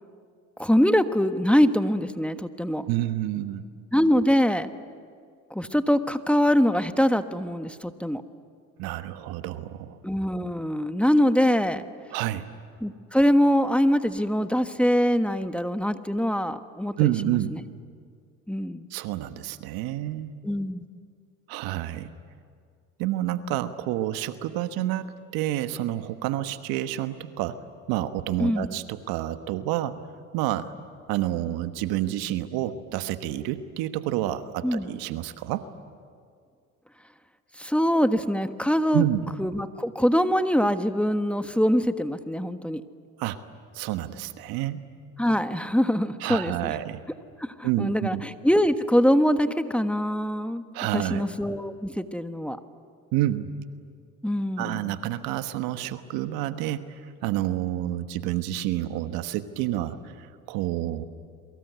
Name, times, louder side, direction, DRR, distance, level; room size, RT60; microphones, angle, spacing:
voice 1, 0.6-2.9 3.9-4.7 5.5-8.2 10.0-11.8 12.8-17.1 17.5-17.6 18.5-18.9 20.4-20.8 28.4-28.7 34.6-34.9 37.6-39.0 39.4-42.8 45.2-46.8 47.4-50.6 50.9-52.6 54.2-55.0, equal, 5° left, 9 dB, 1.3 m, -23 dB
voice 2, 2.9-3.6 8.8-10.0 12.1-12.5 17.0-17.6 18.9-20.3 21.5-22.1 23.0-27.6 27.9-30.0 30.3-30.7 31.1-35.7 38.9-39.2 43.2-43.4 43.7-44.8 46.2-47.0 47.6-48.2 50.7-51.3 53.1-53.5 54.6-61.0, right 13 dB, 75° right, 10 dB, 1.3 m, -29 dB
28.5 x 23.5 x 8.2 m, 2.1 s
supercardioid pair, 70°, 36 cm